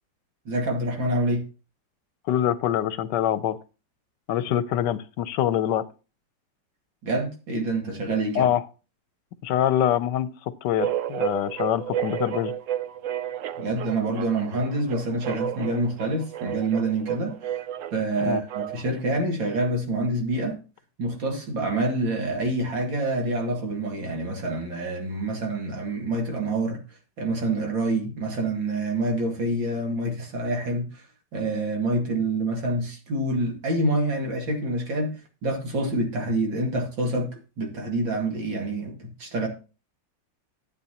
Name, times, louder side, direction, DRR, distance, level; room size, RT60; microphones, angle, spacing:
voice 1, 0.5-1.5 7.0-8.5 13.6-17.6 17.9-20.6 21.0-26.8 27.2-31.0 31.3-39.5, right 2 dB, 85° right, 3.0 m, -27 dB
voice 2, 2.3-3.6 4.3-5.9 8.4-8.6 9.4-10.3 10.6-12.5 18.2-18.4, left 11 dB, 75° left, 1.2 m, -24 dB
sound 1, 10.8-19.0, right 10 dB, 70° right, 0.8 m, -32 dB
12.0 x 8.4 x 2.9 m
omnidirectional pair, 2.0 m